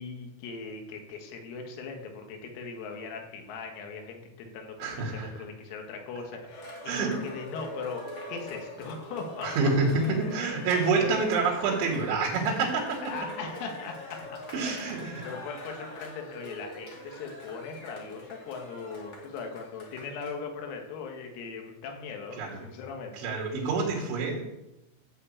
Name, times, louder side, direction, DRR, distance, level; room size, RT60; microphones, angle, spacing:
voice 1, 0.0-9.7 10.1-10.3 11.0-11.3 13.0-14.4 14.7-23.3, left 5 dB, 90° left, 3 dB, 4.5 m, -39 dB
voice 2, 4.8-5.3 6.9-7.1 9.4-13.0 14.5-15.2 22.4-22.6 23.1-24.4, right 4 dB, 70° right, -2 dB, 4.4 m, -27 dB
Cheering, 6.5-20.3, left 1 dB, 40° left, 1.3 m, -43 dB
13.5 x 6.1 x 8.5 m, 0.97 s
omnidirectional pair, 6.0 m